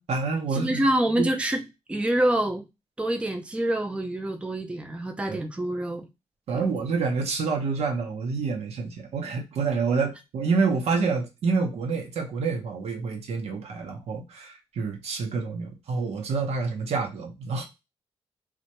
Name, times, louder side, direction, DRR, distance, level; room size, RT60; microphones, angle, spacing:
voice 1, 0.0-0.8 1.2-1.3 5.3-5.4 6.5-17.6, right 4 dB, 75° right, 0.7 m, -28 dB
voice 2, 0.5-1.6 1.9-2.6 3.0-6.1 6.5-6.7, right 1 dB, 10° right, 0.4 m, -26 dB
2.1 x 2.1 x 2.8 m
cardioid pair, 65°, 11 cm